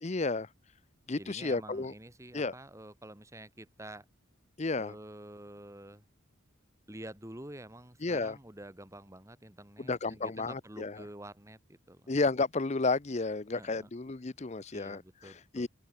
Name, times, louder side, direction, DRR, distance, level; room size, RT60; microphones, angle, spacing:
voice 1, 0.0-0.5 1.1-1.9 2.3-2.5 4.6-4.9 8.0-8.4 9.8-11.0 12.1-15.7, left 3 dB, 30° left, 0.6 m, -32 dB
voice 2, 1.2-4.1 4.7-6.0 6.9-12.1 13.5-13.9 14.7-15.7, right 1 dB, 15° right, 2.1 m, -48 dB
head